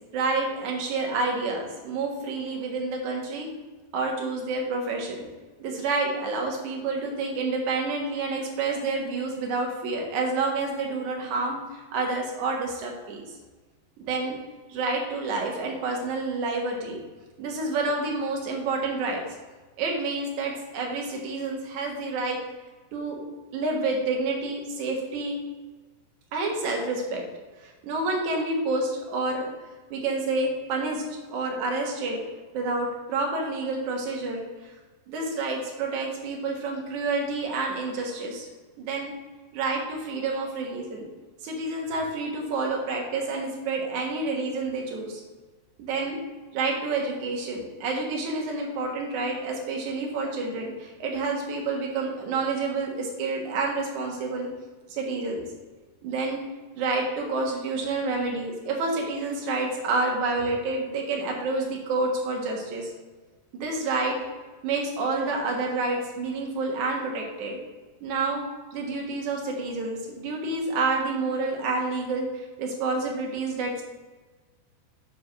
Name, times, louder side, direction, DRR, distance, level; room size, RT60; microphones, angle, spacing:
voice 1, 0.1-3.5 3.9-5.3 5.6-13.3 14.0-14.4 14.7-17.0 17.4-19.2 19.8-22.4 22.9-23.2 23.5-25.4 26.3-27.2 27.6-29.5 29.9-32.2 32.5-34.4 35.1-38.5 38.8-39.1 39.5-41.1 41.4-45.2 45.8-46.2 46.5-54.5 54.9-55.4 56.0-56.4 56.7-62.9 63.5-64.2 64.6-67.6 68.0-68.4 68.7-73.8, right 3 dB, 60° right, 0 dB, 2.3 m, -29 dB
7.5 x 4.7 x 6.1 m, 1.3 s
omnidirectional pair, 4.8 m